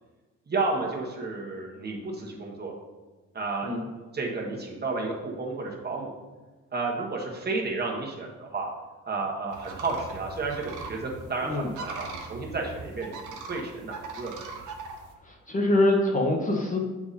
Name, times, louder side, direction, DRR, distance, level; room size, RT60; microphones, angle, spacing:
voice 1, 0.5-2.7 3.3-6.1 6.7-8.7 9.1-14.4, right 3 dB, 35° right, -1 dB, 1.6 m, -32 dB
sound 1, 9.5-15.1, right 4 dB, 90° right, 1.0 m, -41 dB
voice 2, 11.4-11.7 15.2-16.8, left 1 dB, 25° left, -1 dB, 1.1 m, -24 dB
7.0 x 4.9 x 4.2 m, 1.3 s
cardioid pair, 90°, 30 cm